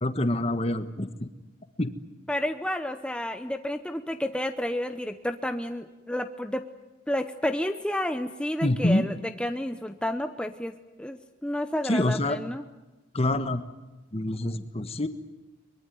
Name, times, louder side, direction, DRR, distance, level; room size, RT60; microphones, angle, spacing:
voice 1, 0.0-1.3 1.8-1.9 8.6-9.0 11.9-12.4 13.1-13.6 14.1-15.1, left 1 dB, 30° left, 10 dB, 1.4 m, -26 dB
voice 2, 2.3-6.6 7.1-10.7 11.0-12.6, left 1 dB, 5° left, 7 dB, 0.8 m, -30 dB
23.0 x 22.5 x 9.4 m, 1.1 s
head